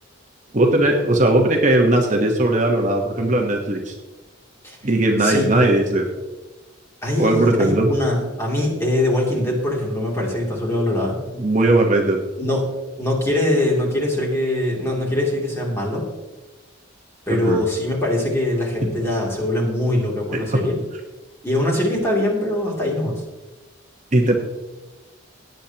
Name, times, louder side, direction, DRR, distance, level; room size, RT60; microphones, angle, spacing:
voice 1, 0.5-3.9 4.8-6.1 7.2-7.9 11.4-12.2 17.3-17.6 20.3-20.6 24.1-24.3, right 1 dB, 40° right, 1 dB, 1.1 m, -18 dB
voice 2, 7.0-11.2 12.4-12.6 13.0-16.0 17.3-20.8 21.4-23.1, left 1 dB, 15° left, -3 dB, 2.7 m, -22 dB
17.5 x 9.1 x 2.9 m, 1.1 s
head